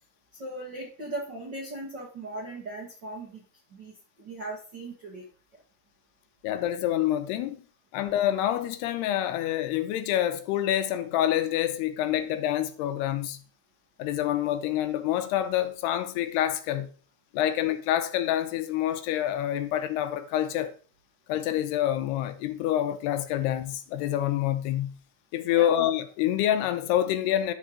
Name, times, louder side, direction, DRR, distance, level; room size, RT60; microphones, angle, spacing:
voice 1, 0.4-3.4 3.7-5.2 17.4-17.5 25.5-25.7, right 2 dB, 50° right, 1.3 m, -38 dB
voice 2, 6.4-7.6 7.9-13.4 14.0-16.9 17.3-20.7 21.3-24.9 25.3-27.5, left 12 dB, 85° left, 2.8 m, -27 dB
11.0 x 4.7 x 5.1 m
omnidirectional pair, 4.7 m